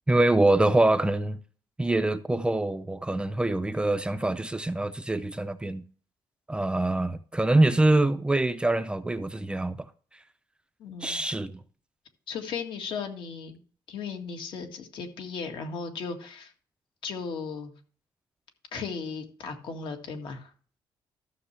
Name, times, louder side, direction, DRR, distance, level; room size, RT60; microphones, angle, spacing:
voice 1, 0.1-1.4 1.8-5.8 6.5-9.9 11.0-11.6, right 2 dB, 10° right, 0.5 m, -24 dB
voice 2, 10.8-11.2 12.3-13.6 13.9-16.5 17.0-17.7 18.7-20.5, left 5 dB, 65° left, 1.9 m, -36 dB
13.5 x 7.1 x 3.2 m
cardioid pair, 155°, 9 cm